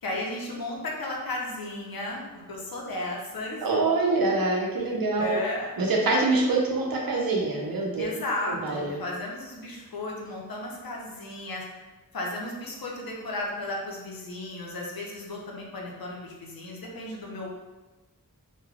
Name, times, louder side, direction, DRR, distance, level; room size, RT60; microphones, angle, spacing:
voice 1, 0.0-3.7 5.2-5.7 8.0-11.6 12.1-17.5, left 2 dB, 90° left, -2 dB, 0.6 m, -34 dB
voice 2, 3.6-5.4 5.8-8.1 8.5-9.0, right 3 dB, 85° right, -1 dB, 0.6 m, -25 dB
3.2 x 2.2 x 2.4 m, 1.2 s
wide cardioid pair, 75°, 34 cm